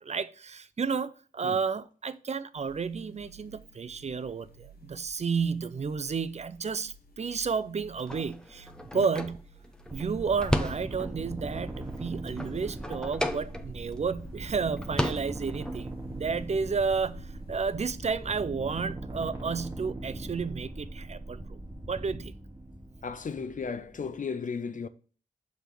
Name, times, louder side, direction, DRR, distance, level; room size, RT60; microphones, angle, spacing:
voice 1, 0.0-9.4 9.9-17.2 17.5-21.4 21.9-22.3, right 5 dB, 45° right, 0.4 m, -31 dB
sound 1, 2.5-17.9, right 3 dB, 85° left, 1.0 m, -54 dB
sound 2, 8.0-11.3 11.7-14.0 14.3-14.4 14.7-15.8, equal, 5° left, 0.6 m, -34 dB
sound 3, 9.9-24.1, right 1 dB, 20° right, 1.4 m, -40 dB
voice 2, 23.0-24.9, left 5 dB, 60° left, 0.6 m, -35 dB
6.5 x 3.5 x 5.9 m
wide cardioid pair, 95°, 15 cm